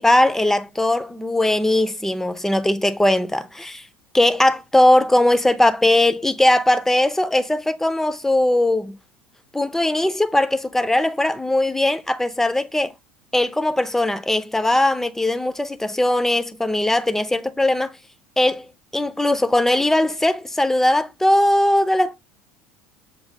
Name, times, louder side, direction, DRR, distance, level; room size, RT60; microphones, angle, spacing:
voice 1, 0.0-3.9 4.1-9.0 9.5-12.9 13.3-17.9 18.4-18.7 18.9-22.1, left 1 dB, 5° left, 0.4 m, -19 dB
6.5 x 2.2 x 2.6 m
hypercardioid pair, 70°, 6 cm